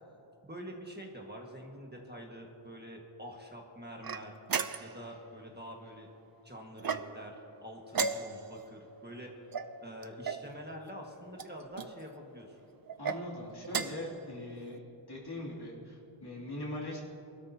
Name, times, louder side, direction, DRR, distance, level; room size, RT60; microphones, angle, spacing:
voice 1, 0.4-4.4 4.8-6.1 6.4-9.3 9.8-12.5, equal, 20° right, 0 dB, 1.6 m, -46 dB
sound 1, 4.0-5.1 6.8-7.4 7.9-8.6 9.5-10.5 11.3-11.9 12.9-13.2 13.6-14.1, right 5 dB, 45° right, 0.6 m, -35 dB
voice 2, 13.0-14.8 15.1-17.0, left 1 dB, 50° left, -3 dB, 2.7 m, -41 dB
22.5 x 12.5 x 2.8 m, 2.9 s
wide cardioid pair, 70°, 49 cm